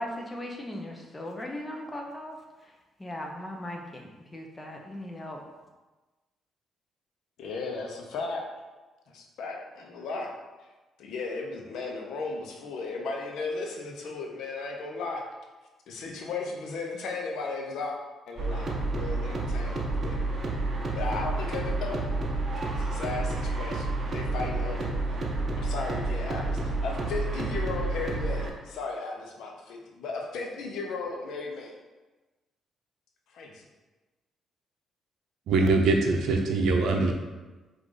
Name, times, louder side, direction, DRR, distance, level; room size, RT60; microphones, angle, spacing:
voice 1, 0.0-2.7 3.0-5.4, left 1 dB, 15° left, 1 dB, 0.7 m, -38 dB
voice 2, 7.4-8.4 9.1-10.3 11.0-15.2 15.9-18.0 18.3-20.2 20.9-22.0 22.7-25.2 25.6-31.7 33.3-33.6, left 3 dB, 75° left, 1 dB, 0.7 m, -35 dB
sound 1, 18.4-28.5, right 2 dB, 40° right, 0.7 m, -30 dB
voice 3, 35.5-37.1, right 3 dB, 80° right, 2 dB, 0.6 m, -23 dB
4.7 x 2.5 x 3.8 m, 1.2 s
cardioid pair, 90°, 0 cm